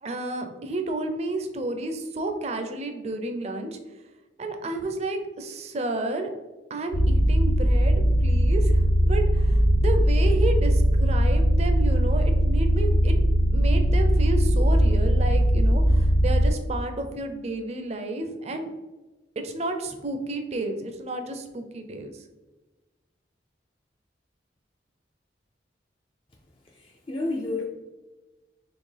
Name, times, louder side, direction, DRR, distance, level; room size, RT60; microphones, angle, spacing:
voice 1, 0.0-3.8 4.4-6.3 6.7-13.1 13.5-18.7 19.4-22.2, right 2 dB, 35° right, 6 dB, 0.5 m, -31 dB
sound 1, 6.9-16.5, equal, 80° left, 0.6 m, -20 dB
voice 2, 26.7-27.6, left 2 dB, 30° left, 0 dB, 0.4 m, -30 dB
4.4 x 3.2 x 3.3 m, 1.1 s
head